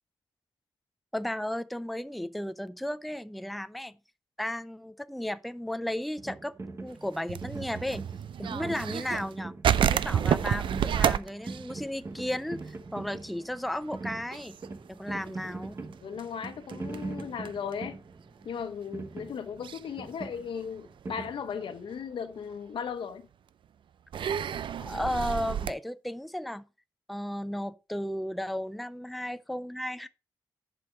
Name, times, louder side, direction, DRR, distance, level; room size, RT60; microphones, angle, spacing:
voice 1, 1.1-3.9 4.4-6.5 6.8-8.0 8.4-9.5 9.9-14.5 14.9-15.7 24.8-26.6 27.1-30.1, left 1 dB, ahead, 0.4 m, -34 dB
sound 1, 6.2-21.9, right 3 dB, 30° right, 1.2 m, -42 dB
sound 2, 7.1-9.3 9.6-12.9 13.1-13.3 13.7-14.0 14.3-17.7 18.5-18.6 19.6-19.9 20.4-21.1 21.6-21.7 23.0-23.1 24.1-25.7, right 9 dB, 80° right, 0.5 m, -30 dB
voice 2, 15.1-15.4 16.0-18.0 18.4-23.2, left 7 dB, 85° left, 1.1 m, -37 dB
11.0 x 5.2 x 4.5 m
wide cardioid pair, 135°, 8 cm